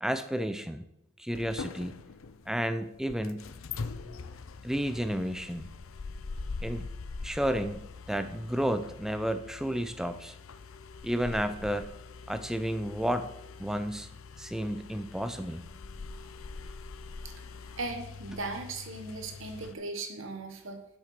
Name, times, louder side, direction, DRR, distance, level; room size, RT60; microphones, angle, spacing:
voice 1, 0.0-0.8 1.2-2.0 2.5-3.5 4.6-5.7 6.6-6.9 7.2-10.3 11.0-11.9 12.3-13.3 13.6-14.1 14.4-15.6, equal, ahead, 10 dB, 0.5 m, -31 dB
sound 1, 1.3-19.7, left 4 dB, 65° left, 0.6 m, -43 dB
voice 2, 17.8-20.8, right 3 dB, 60° right, 5 dB, 1.4 m, -37 dB
8.0 x 6.9 x 6.6 m, 0.84 s
head